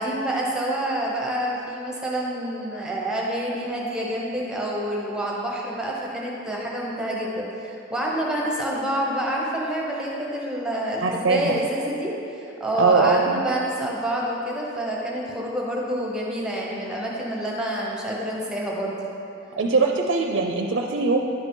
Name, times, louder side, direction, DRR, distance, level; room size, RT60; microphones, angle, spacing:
voice 1, 0.0-18.9, right 1 dB, 5° right, -3 dB, 0.9 m, -27 dB
voice 2, 11.0-11.6 12.8-13.4 19.6-21.2, right 4 dB, 60° right, 2 dB, 0.4 m, -21 dB
10.5 x 4.9 x 3.7 m, 2.8 s
head